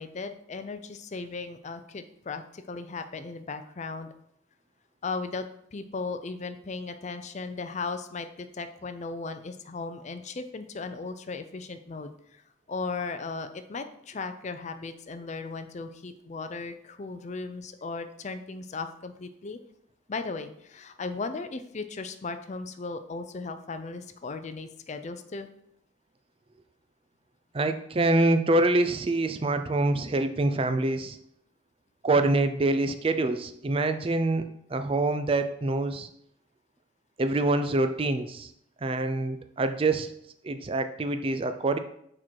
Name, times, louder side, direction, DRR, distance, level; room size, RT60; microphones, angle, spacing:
voice 1, 0.0-4.1 5.0-12.4 12.7-19.6 20.1-25.5, left 4 dB, 35° left, 9 dB, 0.4 m, -36 dB
voice 2, 27.5-31.2 32.0-36.1 37.2-38.5 38.8-40.1 40.4-41.8, right 2 dB, 30° right, 9 dB, 0.4 m, -25 dB
6.4 x 4.4 x 4.6 m, 0.72 s
head